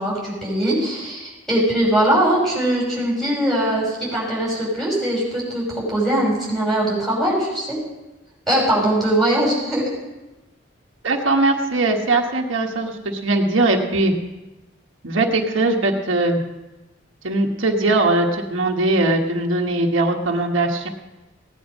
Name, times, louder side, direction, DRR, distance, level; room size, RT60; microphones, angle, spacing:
voice 1, 0.0-7.8 8.5-9.8, right 1 dB, ahead, -5 dB, 5.5 m, -21 dB
voice 2, 11.0-14.1 15.0-16.4 17.2-20.9, right 2 dB, 80° right, 1 dB, 1.4 m, -20 dB
17.0 x 9.9 x 5.3 m, 1.1 s
head